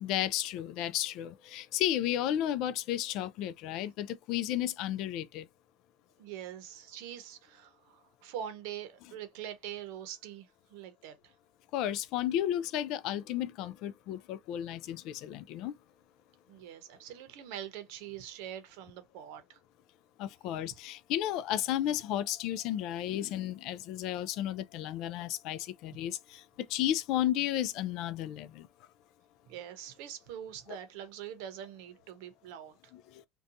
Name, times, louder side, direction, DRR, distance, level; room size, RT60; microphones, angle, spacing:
voice 1, 0.0-5.5 11.7-15.7 20.2-28.7 32.9-33.3, left 12 dB, 55° left, 0.3 m, -33 dB
voice 2, 6.2-11.3 16.5-19.6 29.5-32.8, right 10 dB, 70° right, 0.7 m, -44 dB
2.7 x 2.2 x 2.5 m
supercardioid pair, 135°, 0 cm